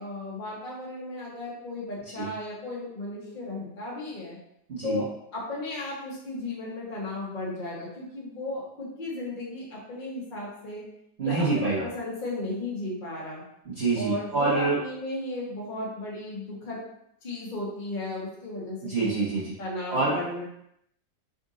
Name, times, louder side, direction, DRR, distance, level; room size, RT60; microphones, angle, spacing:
voice 1, 0.0-4.4 4.8-5.1 5.3-10.8 11.2-13.4 13.9-16.8 17.2-19.1 19.6-20.4, left 2 dB, 30° left, -5 dB, 1.0 m, -35 dB
voice 2, 4.7-5.0 11.2-11.9 13.6-14.8 18.8-19.5 19.9-20.2, right 3 dB, 40° right, -11 dB, 1.2 m, -26 dB
4.0 x 2.6 x 3.7 m, 0.77 s
omnidirectional pair, 1.8 m